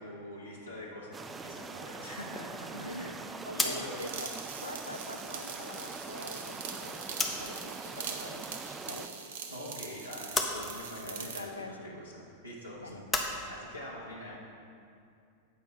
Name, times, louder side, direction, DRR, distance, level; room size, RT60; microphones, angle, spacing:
voice 1, 0.0-3.1 3.5-4.0 9.5-13.0 13.5-14.4, left 1 dB, 90° right, -6 dB, 0.9 m, -44 dB
sound 1, 1.1-9.1, right 4 dB, 15° right, 0.3 m, -43 dB
voice 2, 2.7-3.1 3.5-9.1 11.0-11.8 12.8-13.1, left 1 dB, 85° left, 5 dB, 0.5 m, -44 dB
sound 2, 3.6-7.6 7.9-9.0 9.3-13.3, left 3 dB, 15° left, 0.7 m, -37 dB
sound 3, 4.0-11.5, right 6 dB, 60° right, 0.7 m, -43 dB
8.2 x 5.3 x 4.5 m, 2.5 s
figure-of-eight pair, 90°, 0 cm